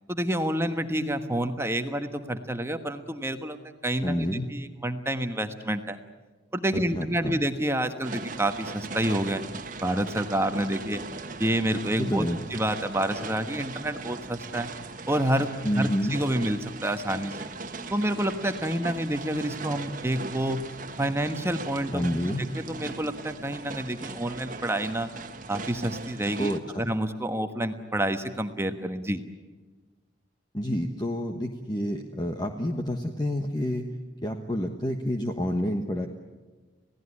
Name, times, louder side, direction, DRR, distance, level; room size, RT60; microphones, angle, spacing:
voice 1, 0.1-3.6 3.8-6.0 6.5-9.4 9.8-11.0 11.4-12.2 12.5-14.7 15.1-15.5 15.8-17.5 17.9-20.6 21.0-25.1 25.5-29.2, right 1 dB, 15° right, 7 dB, 1.3 m, -28 dB
voice 2, 4.0-4.5 6.9-7.4 12.0-12.4 15.6-16.2 21.9-22.5 26.4-26.9 30.5-33.9 34.2-36.1, equal, 20° left, 4 dB, 1.3 m, -28 dB
sound 1, 8.0-26.6, right 3 dB, 45° right, 1.5 m, -39 dB
28.0 x 17.5 x 9.8 m, 1.3 s
head